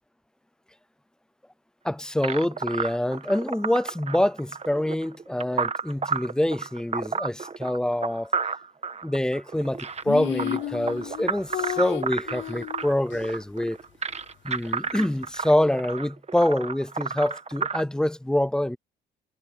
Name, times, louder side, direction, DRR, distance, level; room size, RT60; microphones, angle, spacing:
voice 1, 1.8-8.3 9.0-13.8 14.4-18.8, left 1 dB, 5° left, 0.4 m, -26 dB
sound 1, 2.2-17.8, right 5 dB, 30° right, 1.3 m, -32 dB
sound 2, 10.0-13.2, left 13 dB, 70° left, 0.5 m, -32 dB
cardioid pair, 90°, 20 cm